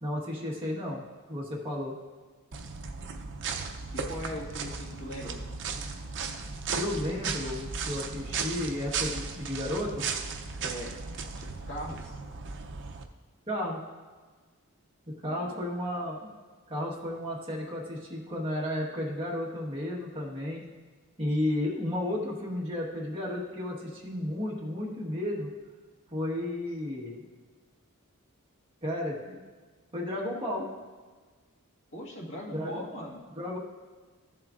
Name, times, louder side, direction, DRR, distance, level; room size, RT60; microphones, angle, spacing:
voice 1, 0.0-2.0 6.8-10.1 13.5-13.8 15.2-16.3 16.7-20.7 21.2-25.5 26.1-27.2 28.8-29.4 29.9-30.7 32.5-32.9 33.4-33.6, left 1 dB, 25° right, -5 dB, 1.4 m, -33 dB
sound 1, 2.5-13.0, right 5 dB, 55° right, 0.6 m, -36 dB
voice 2, 3.9-5.6 10.6-11.0 11.4-12.1 15.2-15.6 31.9-33.2, equal, 60° left, -4 dB, 1.8 m, -40 dB
14.5 x 7.5 x 2.5 m, 1.4 s
head